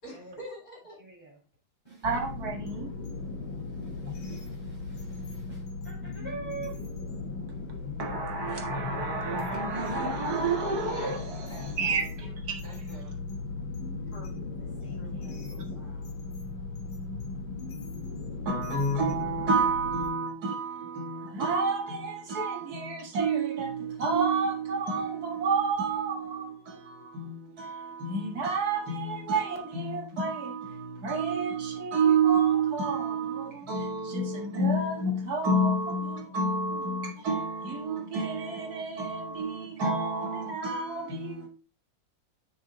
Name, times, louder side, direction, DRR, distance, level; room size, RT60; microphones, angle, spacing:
voice 1, 0.0-1.0 10.9-12.2 12.6-13.1 14.1-14.3 15.0-16.2, equal, 55° left, 6.1 m, -47 dB
voice 2, 1.0-1.4 1.8-2.1 3.1-3.2 4.1-6.8 11.1-12.4 14.6-15.4, right 4 dB, 15° left, 4.5 m, -45 dB
sound 1, 2.0-20.1, left 3 dB, 80° left, 2.2 m, -37 dB
voice 3, 2.0-2.9 8.0-12.8 18.5-41.5, right 3 dB, 55° right, 2.1 m, -29 dB
8.6 x 6.3 x 3.9 m
omnidirectional pair, 2.1 m